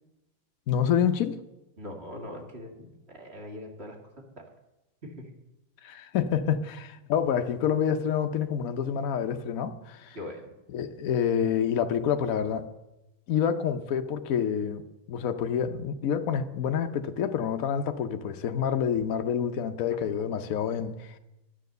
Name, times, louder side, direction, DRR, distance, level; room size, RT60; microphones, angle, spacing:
voice 1, 0.7-1.4 5.8-10.2 10.7-12.7 13.3-21.2, left 8 dB, 80° left, 0.7 m, -28 dB
voice 2, 1.8-4.0 5.0-5.1 10.1-10.5, left 1 dB, 30° right, 2.1 m, -41 dB
11.5 x 10.0 x 6.6 m
omnidirectional pair, 2.4 m